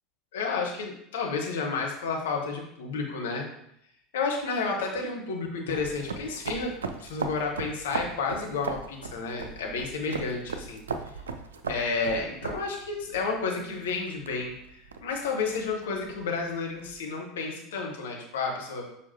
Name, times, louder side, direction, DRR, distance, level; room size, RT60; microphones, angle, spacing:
voice 1, 0.3-3.5 4.1-6.7 7.0-10.8 11.7-18.9, left 4 dB, 65° left, 0 dB, 1.3 m, -31 dB
sound 1, 5.7-17.0, right 4 dB, 75° right, 0.5 m, -39 dB
6.9 x 5.1 x 2.8 m, 0.74 s
figure-of-eight pair, 75°, 0 cm